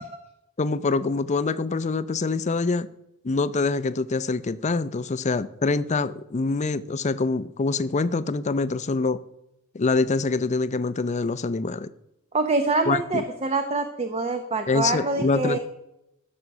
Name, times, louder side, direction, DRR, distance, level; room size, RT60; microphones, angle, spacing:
voice 1, 0.6-2.9 3.2-9.2 9.7-11.9 12.9-13.2 14.7-15.6, left 3 dB, 35° left, 0.5 m, -25 dB
voice 2, 12.3-15.6, right 3 dB, 30° right, 0.8 m, -25 dB
14.0 x 6.6 x 6.0 m
head